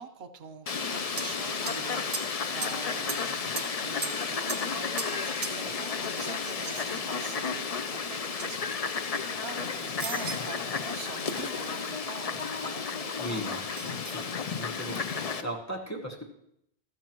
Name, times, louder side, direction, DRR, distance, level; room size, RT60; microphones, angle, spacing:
voice 1, 0.0-14.0 15.1-15.2, right 5 dB, 75° right, 9 dB, 1.1 m, -44 dB
Fowl, 0.7-15.4, left 5 dB, 45° left, 0.6 m, -33 dB
sound 1, 1.2-1.4 1.7-1.8 2.1-2.8 3.1-3.8 4.0-5.2 5.4-7.6 8.2-8.5 8.9-9.5 10.0-10.5 12.4-12.5 13.8-14.3 14.9-15.3, right 4 dB, 45° right, 0.9 m, -39 dB
voice 2, 13.2-13.6 14.1-14.2 14.5-16.2, equal, 15° left, 0 dB, 1.4 m, -37 dB
14.0 x 12.5 x 3.0 m, 0.75 s
omnidirectional pair, 1.1 m